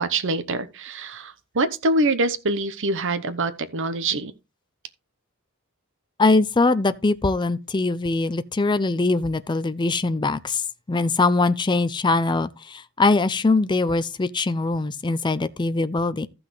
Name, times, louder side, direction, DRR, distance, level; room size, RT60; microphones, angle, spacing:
voice 1, 0.0-4.3, right 2 dB, 60° right, 0.9 m, -25 dB
voice 2, 6.2-10.6 10.9-16.3, left 3 dB, 20° left, 0.4 m, -22 dB
14.5 x 6.1 x 3.2 m
head